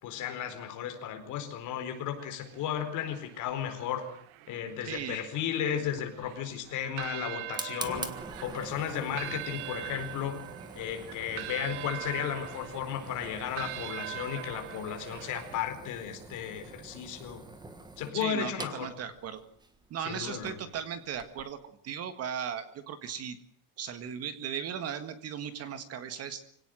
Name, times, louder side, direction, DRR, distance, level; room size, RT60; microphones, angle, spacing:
voice 1, 0.0-4.0 4.5-8.1 8.4-10.4 10.7-17.4 18.0-18.9 20.0-20.6, left 9 dB, 45° left, 6 dB, 4.5 m, -34 dB
sound 1, 1.9-15.7, right 16 dB, 80° right, 1.4 m, -43 dB
voice 2, 4.8-5.2 18.1-19.4 19.9-21.6 21.8-23.4 23.8-26.4, right 8 dB, 35° right, 11 dB, 1.8 m, -37 dB
Fire, 5.8-21.5, right 3 dB, 10° right, 1.4 m, -46 dB
25.0 x 17.5 x 7.7 m, 0.64 s
cardioid pair, 175°, 42 cm